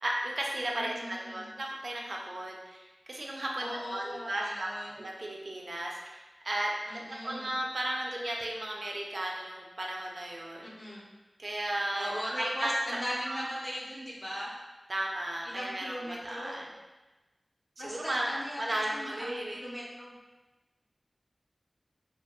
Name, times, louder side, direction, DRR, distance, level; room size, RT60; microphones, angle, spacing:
voice 1, 0.0-6.7 7.2-10.7 11.4-12.7 13.3-13.4 14.9-16.0 16.2-16.7 17.8-18.3 18.6-19.6, right 1 dB, 60° right, -1 dB, 0.3 m, -35 dB
voice 2, 0.8-1.5 3.6-5.0 6.9-7.5 10.6-11.1 11.9-14.5 15.4-16.6 17.8-20.1, equal, 25° left, -5 dB, 0.6 m, -39 dB
2.2 x 2.2 x 2.9 m, 1.2 s
wide cardioid pair, 70°, 0 cm